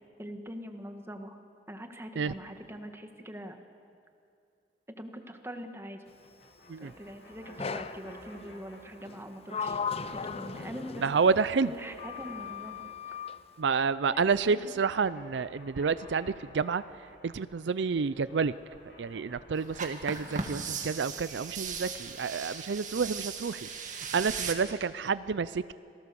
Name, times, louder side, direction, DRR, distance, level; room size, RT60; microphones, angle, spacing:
voice 1, 0.2-1.4 1.7-3.6 4.9-6.0 6.8-9.8 10.1-11.2 11.6-12.8 14.1-14.7, equal, 15° right, 6 dB, 1.5 m, -43 dB
sound 1, 6.0-9.6 9.9-13.6 13.9-20.4, equal, 80° left, 7.6 m, -54 dB
Sliding door, 7.6-8.1 9.1-11.5 12.0-13.4, left 5 dB, 35° left, 0.6 m, -37 dB
voice 2, 11.0-11.7 13.6-16.8 17.2-18.5 19.0-25.7, right 5 dB, 80° right, 16 dB, 0.5 m, -29 dB
sound 2, 19.7-24.5, right 5 dB, 45° right, 1.9 m, -37 dB
27.5 x 18.0 x 7.0 m, 2.5 s
head